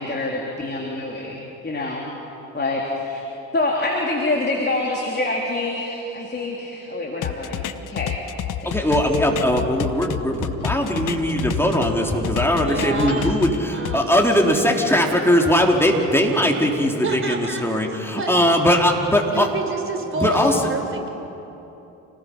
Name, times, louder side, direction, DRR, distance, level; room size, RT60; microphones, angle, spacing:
voice 1, 0.0-2.0 2.5-3.2 3.5-8.1 8.6-8.7, left 2 dB, 25° left, -1 dB, 3.6 m, -26 dB
sound 1, 7.2-11.9 12.2-14.0, left 10 dB, 50° left, 1.0 m, -29 dB
voice 2, 8.6-19.5 20.1-20.6, equal, 5° left, 0 dB, 4.1 m, -20 dB
Microwave oven, 8.8-14.9 15.3-15.4 15.7-16.3, left 2 dB, 90° left, 4.3 m, -38 dB
voice 3, 12.5-13.4 13.7-14.7 17.0-17.6 18.2-18.8 19.3-21.1, right 3 dB, 30° right, 5 dB, 4.3 m, -29 dB
28.5 x 20.0 x 5.7 m, 3.0 s
hypercardioid pair, 55°, 40 cm